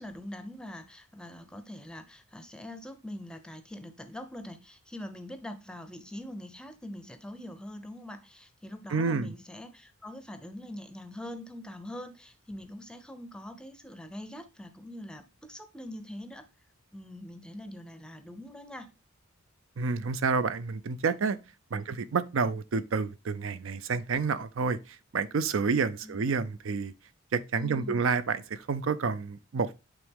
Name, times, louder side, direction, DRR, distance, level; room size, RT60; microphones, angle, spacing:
voice 1, 0.0-16.4 16.9-18.9 21.7-21.9 26.0-26.2 27.5-28.0, left 1 dB, 5° left, 0.6 m, -43 dB
voice 2, 8.9-9.3 19.8-21.4 21.7-24.8 25.1-26.9 27.3-29.7, right 5 dB, 60° right, 0.4 m, -29 dB
8.9 x 3.5 x 3.6 m
head